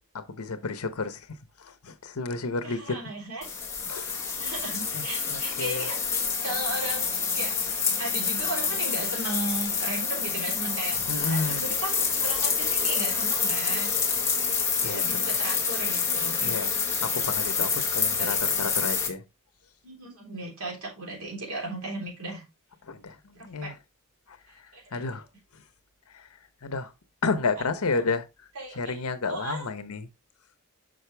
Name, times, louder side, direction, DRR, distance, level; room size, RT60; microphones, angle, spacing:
voice 1, 0.1-1.3 1.6-3.0 3.9-4.2 4.9-5.9 11.1-11.6 14.8-15.4 16.4-16.7 17.0-19.2 22.8-23.8 24.3-24.4 24.9-25.2 25.5-25.6 26.1-26.3 26.6-26.9 27.2-28.2 28.7-30.1, left 4 dB, 80° left, 0.9 m, -31 dB
voice 2, 2.6-3.4 4.4-6.0 6.4-7.5 8.0-14.0 14.7-16.9 18.2-18.7 19.8-22.4 23.4-23.7 24.7-25.0 27.9-28.0 28.6-29.0 29.3-29.7, right 2 dB, 75° right, 3.5 m, -36 dB
sound 1, 3.4-19.1, left 6 dB, 15° left, 1.5 m, -27 dB
6.4 x 5.4 x 3.4 m
head